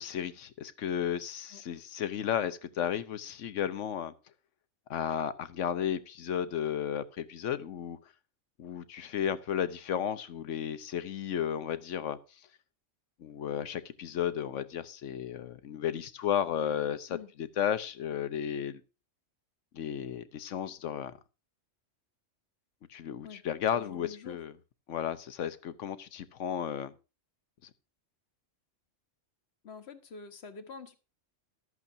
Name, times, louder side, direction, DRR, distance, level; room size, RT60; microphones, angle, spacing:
voice 1, 0.0-4.1 4.9-8.0 8.6-12.2 13.2-18.8 19.7-21.2 22.9-24.5 24.9-26.9 27.6-27.7, left 9 dB, 75° left, 1.1 m, -33 dB
voice 2, 23.7-24.4 29.6-31.0, left 5 dB, 60° left, 1.3 m, -46 dB
14.5 x 12.0 x 2.7 m
omnidirectional pair, 1.3 m